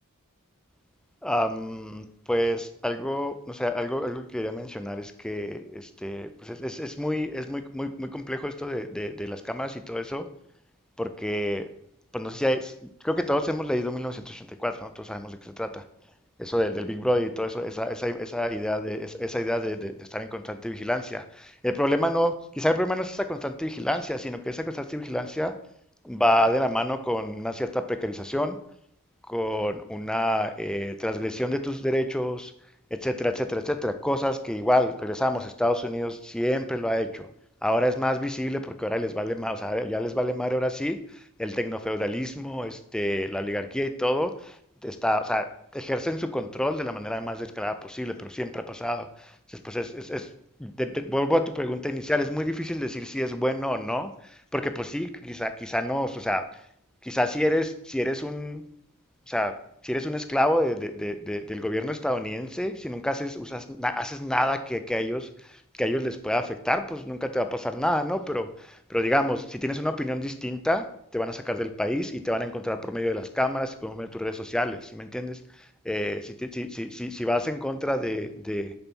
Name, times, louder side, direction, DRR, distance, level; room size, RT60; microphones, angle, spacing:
voice 1, 1.2-10.3 11.0-11.7 12.1-15.8 16.4-25.6 26.0-28.6 29.3-32.5 32.9-37.3 37.6-50.3 50.6-56.6 57.0-58.6 59.3-78.7, left 1 dB, 5° left, 9 dB, 0.4 m, -28 dB
6.8 x 4.1 x 6.0 m, 0.70 s
head